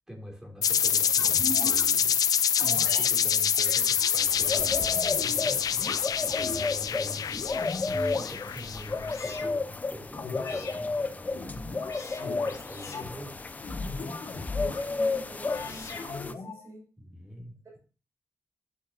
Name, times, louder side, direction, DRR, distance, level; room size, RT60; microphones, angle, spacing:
voice 1, 0.1-7.7 8.1-11.8 12.2-13.4 17.0-17.5, equal, 10° right, 0 dB, 2.9 m, -44 dB
sound 1, 0.6-9.1, left 8 dB, 90° left, 0.5 m, -26 dB
sound 2, 1.2-1.9 2.6-3.1 3.5-5.3 5.8-6.7 7.1-8.3 9.0-9.6 10.1-10.8 11.3-13.1 13.6-14.8 15.4-16.6, left 3 dB, 70° left, 2.1 m, -38 dB
sound 3, 4.2-16.3, left 3 dB, 25° left, 0.5 m, -33 dB
voice 2, 12.5-13.2 14.5-16.9, right 1 dB, 55° right, -1 dB, 6.0 m, -48 dB
12.5 x 7.1 x 2.8 m, 0.34 s
wide cardioid pair, 170°, 6 cm